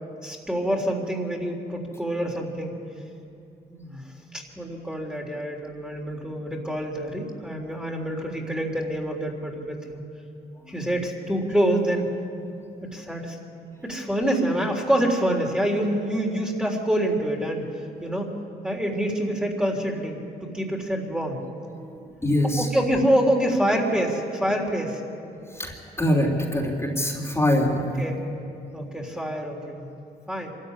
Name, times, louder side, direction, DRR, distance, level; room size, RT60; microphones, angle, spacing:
voice 1, 0.2-2.8 3.7-4.0 4.3-10.0 10.7-12.1 12.8-13.4 13.8-18.3 18.6-21.4 22.6-25.0 28.0-28.2 28.7-29.9 30.3-30.5, right 1 dB, 5° right, 0 dB, 3.6 m, -26 dB
voice 2, 21.8-22.7 25.4-28.1, left 1 dB, 15° left, -2 dB, 3.4 m, -24 dB
24.5 x 14.0 x 10.0 m, 2.6 s
cardioid pair, 75°, 18 cm